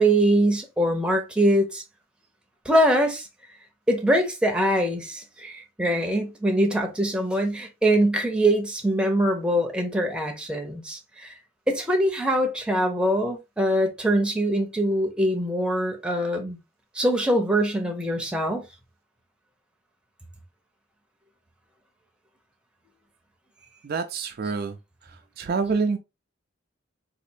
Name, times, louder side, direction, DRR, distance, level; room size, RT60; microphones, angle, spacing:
voice 1, 0.0-1.8 2.6-3.3 3.9-11.3 11.7-16.6 16.9-18.6, right 1 dB, 5° right, 0.7 m, -23 dB
voice 2, 23.8-24.8 25.0-26.0, right 4 dB, 50° right, 0.4 m, -27 dB
4.1 x 2.6 x 2.6 m
head